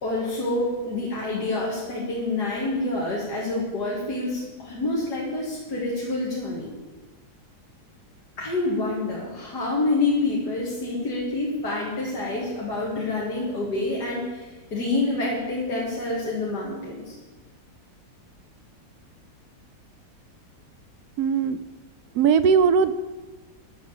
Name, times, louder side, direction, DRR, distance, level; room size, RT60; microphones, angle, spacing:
voice 1, 0.0-6.7 8.4-17.2, left 2 dB, 70° left, -4 dB, 2.5 m, -27 dB
voice 2, 21.2-21.6 22.1-22.9, right 6 dB, 70° right, 12 dB, 1.1 m, -19 dB
10.5 x 7.3 x 7.9 m, 1.2 s
omnidirectional pair, 1.8 m